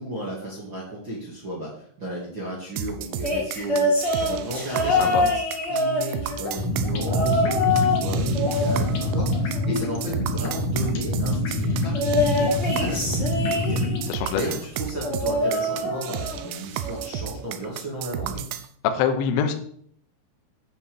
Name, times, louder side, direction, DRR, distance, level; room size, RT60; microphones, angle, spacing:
voice 1, 0.0-5.3 5.7-12.5 12.8-14.0 14.3-18.4, right 1 dB, 35° right, -5 dB, 2.0 m, -34 dB
sound 1, 2.8-18.7, right 10 dB, 80° right, 2.8 m, -33 dB
sound 2, 3.2-6.5 7.1-8.1 8.3-9.9 11.9-14.1 15.0-16.5 16.8-17.2 18.3-18.4, left 2 dB, 15° left, 3.1 m, -25 dB
voice 2, 4.9-5.2 14.1-14.6 18.8-19.5, left 7 dB, 75° left, 6 dB, 3.0 m, -24 dB
sound 3, 6.4-14.1, left 1 dB, 60° left, 1.7 m, -26 dB
9.8 x 6.0 x 7.1 m, 0.62 s
omnidirectional pair, 5.7 m